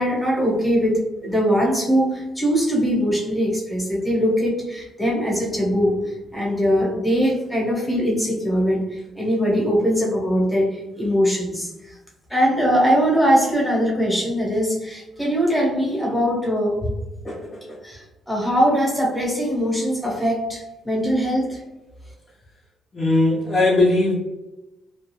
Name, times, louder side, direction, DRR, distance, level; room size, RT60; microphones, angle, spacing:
voice 1, 0.0-12.0 12.3-16.8 17.8-21.6, equal, 5° left, -3 dB, 1.1 m, -21 dB
voice 2, 17.2-17.8 22.9-24.1, left 2 dB, 25° left, -5 dB, 0.6 m, -20 dB
2.5 x 2.2 x 3.1 m, 1.0 s
cardioid pair, 90°, 0 cm